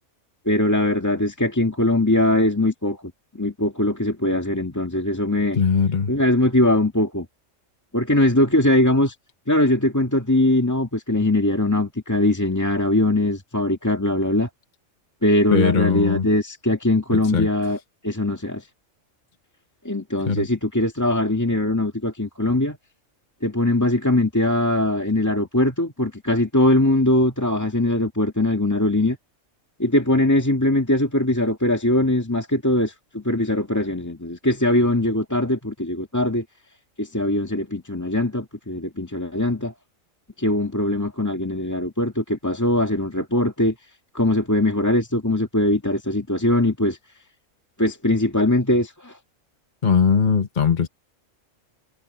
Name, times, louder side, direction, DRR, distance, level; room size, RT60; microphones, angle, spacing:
voice 1, 0.5-3.0 3.3-5.6 6.1-7.3 7.9-9.2 9.5-14.5 15.2-17.8 18.0-18.7 19.8-22.8 23.4-29.2 29.8-36.4 37.0-39.7 40.4-43.7 44.1-47.0 47.8-49.2, left 1 dB, 15° left, 1.8 m, -21 dB
voice 2, 5.6-6.1 15.5-16.3 17.1-17.5 20.3-20.5 49.8-50.9, left 6 dB, 40° left, 1.3 m, -20 dB
omnidirectional pair, 1.3 m